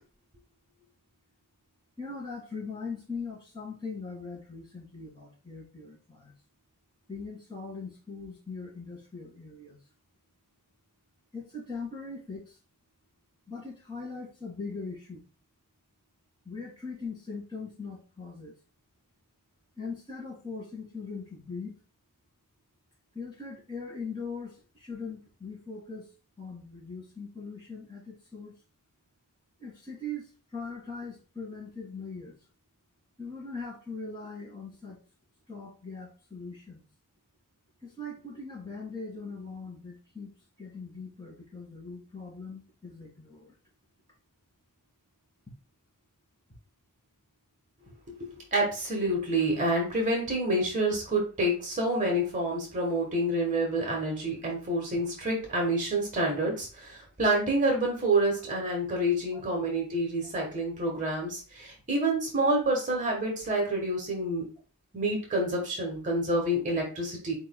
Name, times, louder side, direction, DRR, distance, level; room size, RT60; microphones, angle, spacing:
voice 1, 2.0-6.3 7.1-9.8 11.3-12.6 13.5-15.2 16.5-18.6 19.8-21.8 23.1-26.1 26.4-28.6 29.6-32.4 33.2-35.0 35.5-36.8 37.8-40.3 40.6-43.5 59.3-59.4, left 3 dB, 20° left, -4 dB, 2.1 m, -40 dB
voice 2, 48.2-64.4 64.9-67.3, right 1 dB, 35° right, 0 dB, 1.3 m, -28 dB
4.7 x 4.5 x 2.2 m, 0.36 s
head